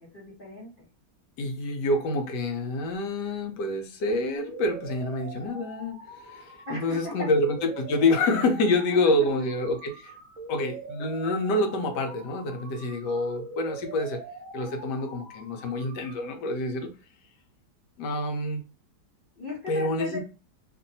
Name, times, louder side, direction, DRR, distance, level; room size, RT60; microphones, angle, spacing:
voice 1, 0.1-0.8 6.7-7.3 8.9-9.5 19.4-20.2, left 2 dB, 35° left, -7 dB, 1.0 m, -37 dB
voice 2, 1.4-10.1 10.5-14.2 14.5-16.9 18.0-18.6 19.7-20.2, left 2 dB, 75° left, 4 dB, 1.3 m, -27 dB
sound 1, 4.4-16.4, right 3 dB, 60° right, 1.0 m, -43 dB
2.9 x 2.6 x 2.6 m, 0.34 s
omnidirectional pair, 1.9 m